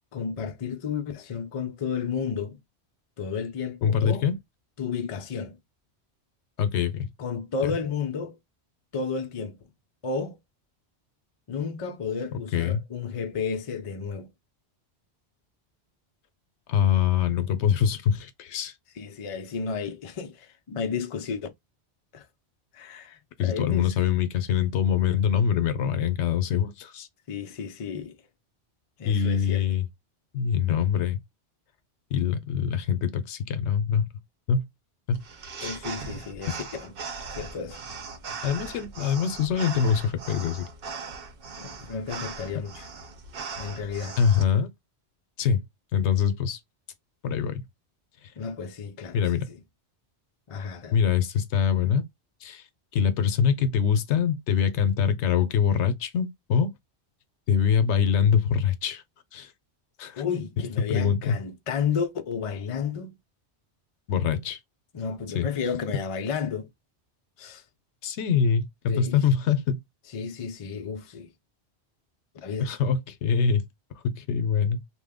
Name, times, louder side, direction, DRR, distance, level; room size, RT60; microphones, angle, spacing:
voice 1, 0.1-2.6 3.2-4.3 4.8-5.6 7.2-8.4 8.9-9.6 10.0-10.4 11.5-14.3 19.0-21.4 22.1-22.3 22.7-23.9 27.3-28.2 29.0-29.7 35.6-36.9 37.3-37.8 41.6-42.9 43.6-44.2 48.4-49.6 50.5-51.0 60.2-63.2 64.9-66.7 67.4-67.6 68.9-69.2 70.1-71.3 72.4-72.7, left 6 dB, 45° left, 0.4 m, -32 dB
voice 2, 3.8-4.4 6.6-7.1 7.6-7.7 12.5-12.8 16.7-18.7 23.4-27.1 29.0-29.9 30.3-31.2 32.1-34.1 34.5-34.7 35.1-35.2 35.6-35.7 38.4-40.7 44.2-44.7 45.4-45.6 45.9-46.6 47.2-47.7 49.1-49.5 50.9-52.1 52.4-52.6 52.9-56.7 57.5-59.0 59.3-59.5 60.0-60.2 60.9-61.3 64.1-64.6 65.3-65.5 68.0-69.8 72.6-73.6 74.0-74.8, left 7 dB, 80° left, 0.9 m, -24 dB
sound 1, 35.1-44.4, right 5 dB, 60° right, 0.8 m, -39 dB
2.9 x 2.1 x 3.4 m
omnidirectional pair, 1.2 m